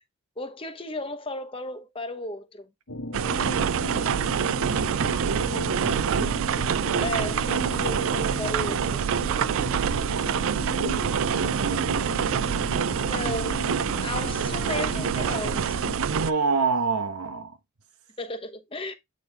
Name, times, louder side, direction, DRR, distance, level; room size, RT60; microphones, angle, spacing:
voice 1, 0.4-2.7 7.0-9.0 13.1-15.8 18.2-18.9, left 2 dB, 25° left, 0.9 m, -35 dB
sound 1, 2.9-16.0, left 1 dB, 80° left, 1.6 m, -36 dB
sound 2, 3.1-16.3, right 7 dB, 60° right, 0.3 m, -26 dB
voice 2, 4.8-6.5 10.2-10.4 10.8-12.1 16.0-17.6, right 4 dB, 85° right, 1.1 m, -29 dB
8.5 x 4.2 x 3.4 m
head